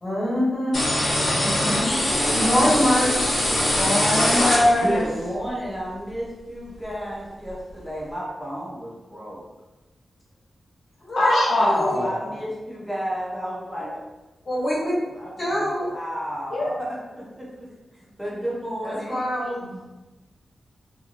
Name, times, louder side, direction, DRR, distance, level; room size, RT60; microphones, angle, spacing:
voice 1, 0.0-0.7 2.3-3.2 11.0-11.3 11.6-11.9 14.4-14.9 15.4-15.9 18.8-19.5, equal, 35° left, -9 dB, 1.3 m, -24 dB
sound 1, 0.7-5.1, left 1 dB, 55° left, 0.8 m, -22 dB
voice 2, 1.2-1.9 3.7-5.0 11.2-12.1 16.5-16.7 19.6-19.7, left 1 dB, 80° left, -5 dB, 0.6 m, -22 dB
voice 3, 4.8-9.4 11.5-14.0 15.1-17.7 18.2-19.2, equal, 5° right, -7 dB, 0.6 m, -32 dB
2.8 x 2.5 x 2.5 m, 1.1 s
wide cardioid pair, 175°, 0 cm